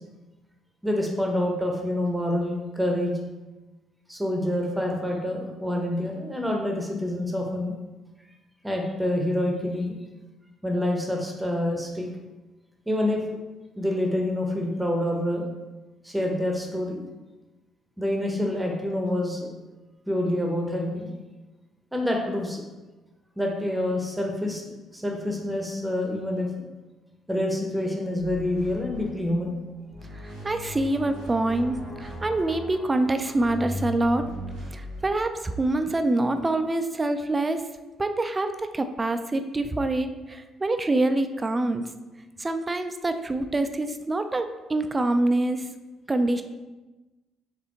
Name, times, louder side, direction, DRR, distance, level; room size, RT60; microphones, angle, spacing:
voice 1, 0.8-3.2 4.1-7.7 8.6-10.0 10.6-12.1 12.9-13.2 13.8-15.4 16.0-17.0 18.0-19.5 20.1-21.1 21.9-22.6 23.4-24.6 24.9-26.5 27.3-29.6, left 1 dB, 10° right, 1 dB, 0.8 m, -27 dB
sound 1, 28.2-29.6 29.9-32.8 33.3-35.0, left 1 dB, 90° left, 1.1 m, -38 dB
Brass instrument, 29.7-33.9, left 1 dB, 45° left, 0.8 m, -47 dB
voice 2, 30.1-34.4 34.7-37.6 38.0-41.9 42.4-45.7 46.1-46.4, right 2 dB, 25° right, 8 dB, 0.3 m, -26 dB
4.1 x 3.4 x 2.9 m, 1.1 s
figure-of-eight pair, 45°, 0 cm